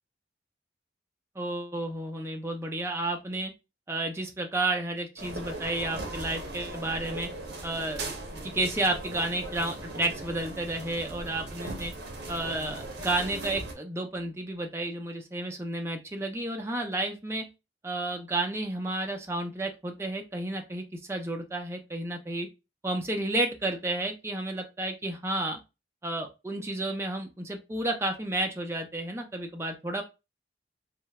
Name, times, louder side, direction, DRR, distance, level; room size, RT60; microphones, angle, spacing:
voice 1, 1.4-3.5 3.9-7.3 7.6-8.1 8.5-11.9 12.3-17.5 17.8-22.5 22.8-25.6 26.0-30.0, right 2 dB, 15° right, 3 dB, 0.3 m, -31 dB
sound 1, 5.2-13.7, right 2 dB, 75° right, 0.6 m, -39 dB
2.9 x 2.0 x 2.2 m, 0.27 s
head